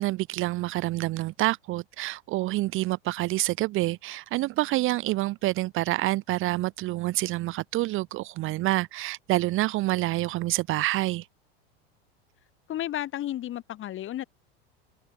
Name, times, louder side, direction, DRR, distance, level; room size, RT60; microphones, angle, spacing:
voice 1, 0.0-11.3, right 18 dB, 40° right, 0.8 m, -27 dB
voice 2, 12.7-14.3, left 12 dB, 40° left, 4.9 m, -32 dB
hypercardioid pair, 95°, 31 cm